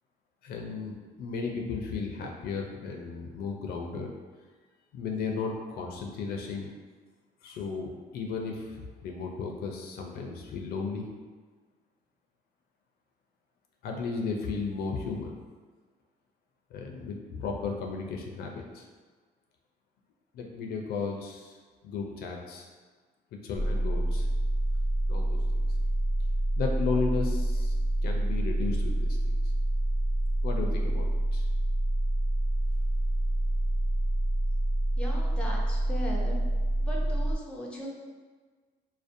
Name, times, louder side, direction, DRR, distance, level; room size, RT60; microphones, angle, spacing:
voice 1, 0.4-4.1 4.9-6.7 7.4-11.1 13.8-15.3 16.7-18.9 20.3-21.6 21.8-22.7 23.4-24.3 25.1-25.6 26.6-27.8 28.0-29.3 30.4-31.4, left 4 dB, 70° left, 1 dB, 0.4 m, -34 dB
sound 1, 23.5-37.4, right 1 dB, 50° right, 0.5 m, -27 dB
voice 2, 35.0-36.4 36.8-37.9, left 1 dB, 5° left, -2 dB, 0.4 m, -38 dB
2.5 x 2.0 x 2.5 m, 1.4 s
cardioid pair, 110°, 17 cm